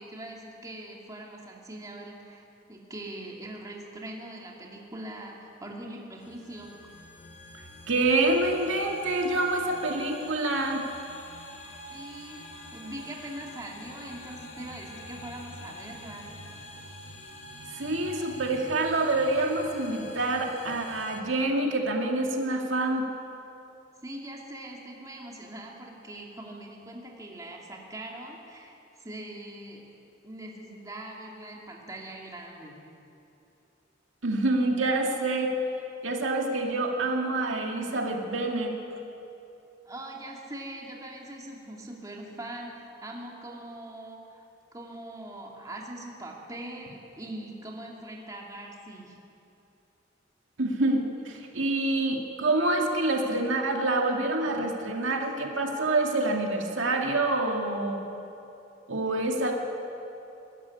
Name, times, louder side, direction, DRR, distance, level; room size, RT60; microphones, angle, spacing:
voice 1, 0.0-6.7 11.9-16.3 24.0-29.9 30.2-32.8 39.8-44.5 44.7-49.1, right 1 dB, 20° right, -2 dB, 2.7 m, -42 dB
sound 1, 6.2-21.2, left 1 dB, 90° left, 2.2 m, -46 dB
voice 2, 7.9-10.8 17.7-23.1 34.2-35.5 36.0-38.7 50.6-58.0 58.9-59.5, right 2 dB, 75° right, 1 dB, 2.2 m, -27 dB
22.5 x 13.5 x 9.7 m, 2.9 s
head